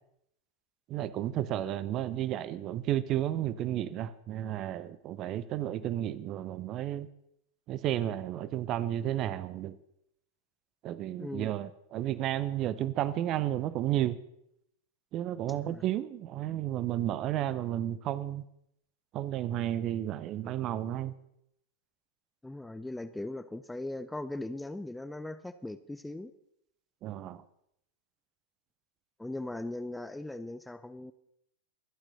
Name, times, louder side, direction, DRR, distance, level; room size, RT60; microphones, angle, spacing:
voice 1, 0.9-7.1 7.7-9.8 10.8-14.2 15.1-18.4 19.1-21.1 27.0-27.4, right 12 dB, 35° right, 17 dB, 0.7 m, -32 dB
voice 2, 11.2-11.5 15.5-15.8 22.4-26.3 29.2-31.1, left 2 dB, 5° left, 12 dB, 0.6 m, -39 dB
23.5 x 9.0 x 4.1 m, 0.75 s
figure-of-eight pair, 90°, 0 cm